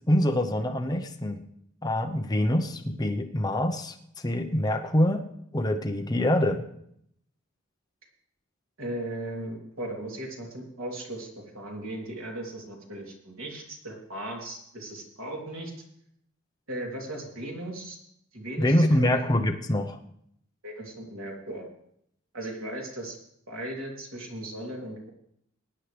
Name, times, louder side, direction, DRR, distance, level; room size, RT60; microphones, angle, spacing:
voice 1, 0.1-1.4 1.8-5.3 5.5-6.6 18.6-20.0, left 1 dB, 20° left, 3 dB, 0.8 m, -25 dB
voice 2, 8.8-15.7 16.7-18.0 18.3-19.1 20.6-21.7 22.3-23.2 23.5-25.1, right 1 dB, 90° right, -1 dB, 3.2 m, -37 dB
20.5 x 9.3 x 3.4 m, 0.72 s
head